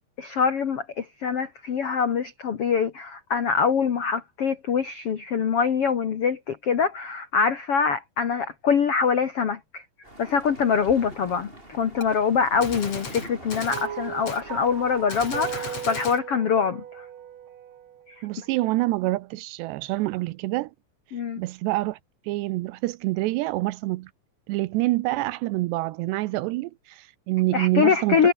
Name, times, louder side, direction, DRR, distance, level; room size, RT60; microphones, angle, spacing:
voice 1, 0.2-9.8 10.2-17.0 21.1-21.4 27.5-28.3, left 6 dB, 70° left, 1.3 m, -24 dB
sound 1, 10.0-15.7, right 1 dB, 10° right, 7.8 m, -44 dB
Gunshot gunfire, 12.0-12.1 12.6-13.9 14.3-14.4 15.1-16.2, left 4 dB, 35° left, 5.1 m, -36 dB
sound 2, 13.7-18.1, right 10 dB, 60° right, 1.9 m, -37 dB
voice 2, 18.2-20.7 21.4-22.0 22.3-24.1 24.5-28.3, right 19 dB, 80° right, 2.7 m, -26 dB
omnidirectional pair, 5.2 m